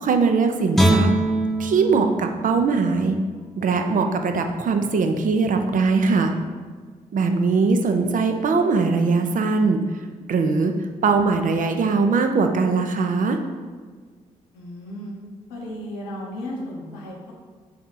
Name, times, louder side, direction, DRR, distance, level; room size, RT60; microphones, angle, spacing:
voice 1, 0.0-1.1 1.6-3.2 3.6-6.4 7.1-9.8 10.3-13.4, right 4 dB, 50° right, 6 dB, 0.5 m, -21 dB
Guitar, 0.7-3.9 4.3-4.5, right 1 dB, ahead, 0.6 m, -24 dB
voice 2, 14.5-15.1 15.5-17.3, left 1 dB, 90° left, -2 dB, 0.6 m, -34 dB
3.4 x 2.8 x 4.0 m, 1.5 s
hypercardioid pair, 40°, 17 cm